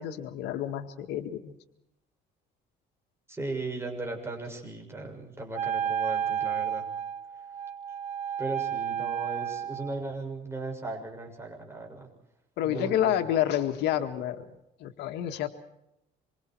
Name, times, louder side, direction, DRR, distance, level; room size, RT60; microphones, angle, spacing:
voice 1, 0.0-1.5 12.6-14.4 14.8-15.5, left 11 dB, 85° left, 6 dB, 1.9 m, -29 dB
voice 2, 3.3-6.8 8.4-12.1 12.6-13.3, right 2 dB, 15° right, 2 dB, 6.8 m, -37 dB
Wind instrument woodwind instrument, 5.5-10.1, right 9 dB, 45° right, 1.5 m, -32 dB
26.5 x 24.5 x 4.7 m, 0.85 s
cardioid pair, 110°, 17 cm